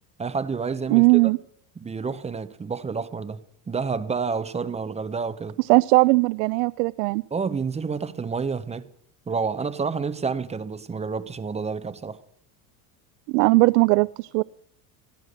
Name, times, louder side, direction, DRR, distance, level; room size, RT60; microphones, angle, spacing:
voice 1, 0.2-1.2 1.8-5.6 7.3-8.9 9.3-12.2, right 5 dB, 15° right, 0.8 m, -29 dB
voice 2, 0.9-1.4 5.7-7.2 13.3-14.4, right 25 dB, 70° right, 0.5 m, -19 dB
14.5 x 10.5 x 6.6 m
supercardioid pair, 125°, 44 cm